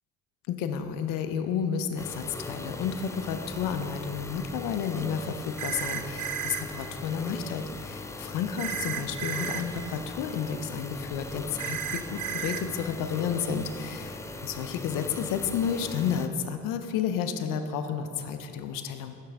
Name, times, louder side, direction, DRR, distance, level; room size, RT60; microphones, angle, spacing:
voice 1, 0.5-14.1 14.4-19.2, left 7 dB, 90° left, 8 dB, 0.6 m, -31 dB
sound 1, 2.0-16.3, left 2 dB, 10° left, 0.3 m, -40 dB
sound 2, 5.6-6.6 8.6-9.6 11.6-12.6, right 9 dB, 70° right, 0.6 m, -33 dB
10.0 x 5.7 x 3.5 m, 2.6 s
cardioid pair, 75°, 32 cm